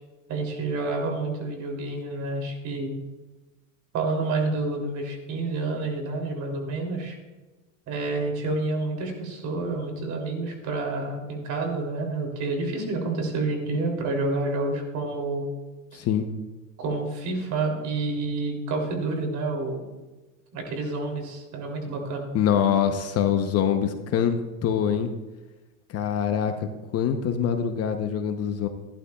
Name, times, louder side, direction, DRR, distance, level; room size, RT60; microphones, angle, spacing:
voice 1, 0.3-3.0 3.9-7.2 7.9-15.5 15.9-16.0 16.8-19.8 20.5-22.3, right 3 dB, 45° right, 1 dB, 3.1 m, -29 dB
voice 2, 15.9-16.3 22.3-25.1 25.9-26.7 26.9-28.7, left 8 dB, 35° left, 7 dB, 0.8 m, -24 dB
15.0 x 11.5 x 2.3 m, 1.2 s
supercardioid pair, 135°, 40 cm